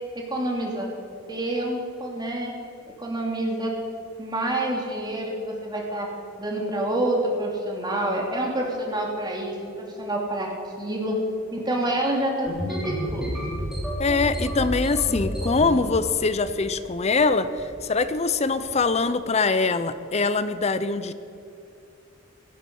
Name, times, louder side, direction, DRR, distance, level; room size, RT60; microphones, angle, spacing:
voice 1, 0.1-0.9 1.3-2.5 3.0-3.7 4.2-6.1 6.4-10.5 10.8-11.2 11.5-13.3, right 1 dB, 20° right, -1 dB, 2.7 m, -27 dB
sound 1, 12.5-15.7 16.2-16.7 17.0-17.2 17.6-17.9 18.5-18.7, equal, 5° right, 4.5 m, -30 dB
voice 2, 14.0-17.5 17.8-21.1, left 4 dB, 30° left, 13 dB, 0.6 m, -23 dB
17.0 x 14.0 x 5.4 m, 2.8 s
head